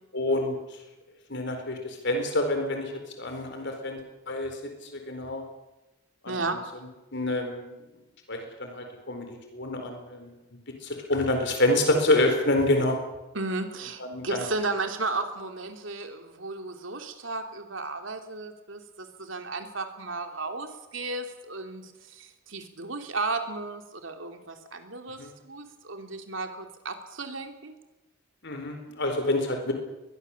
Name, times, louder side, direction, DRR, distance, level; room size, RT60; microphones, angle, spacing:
voice 1, 0.1-0.6 1.3-2.9 3.2-4.0 4.3-5.4 6.2-6.4 7.1-7.8 8.3-13.0 14.0-14.4 25.2-25.3 28.4-29.7, left 1 dB, 60° left, 4 dB, 4.2 m, -27 dB
voice 2, 6.3-6.7 13.3-27.7, right 3 dB, 70° right, 6 dB, 3.1 m, -34 dB
22.0 x 22.0 x 7.3 m, 1.0 s
head